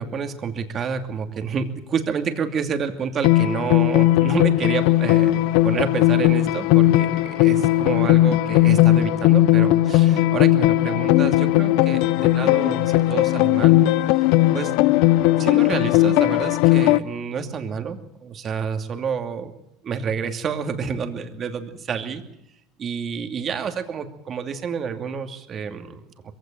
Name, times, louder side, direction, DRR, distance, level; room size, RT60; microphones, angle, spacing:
voice 1, 0.0-13.8 14.5-14.8 15.4-19.5 19.8-22.2 22.8-26.3, right 6 dB, 40° right, 6 dB, 2.6 m, -29 dB
sound 1, 3.2-17.0, left 15 dB, 70° left, 0.7 m, -17 dB
22.0 x 16.0 x 9.2 m, 0.80 s
supercardioid pair, 115°, 0 cm